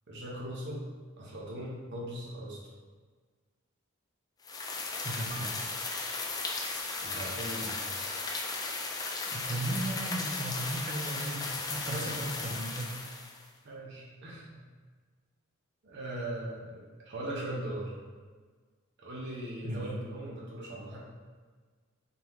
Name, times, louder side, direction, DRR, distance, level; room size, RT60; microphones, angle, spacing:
voice 1, 0.1-0.8 1.2-2.6 7.0-7.7 11.9-12.2 13.6-14.6 15.8-16.8 17.1-17.9 19.0-21.0, right 1 dB, 60° right, -5 dB, 1.0 m, -39 dB
sound 1, 4.4-13.5, left 3 dB, 20° left, 0.4 m, -36 dB
voice 2, 5.0-5.6 9.3-12.9 19.6-19.9, right 1 dB, 35° right, -1 dB, 0.7 m, -36 dB
4.1 x 3.6 x 3.1 m, 1.5 s
head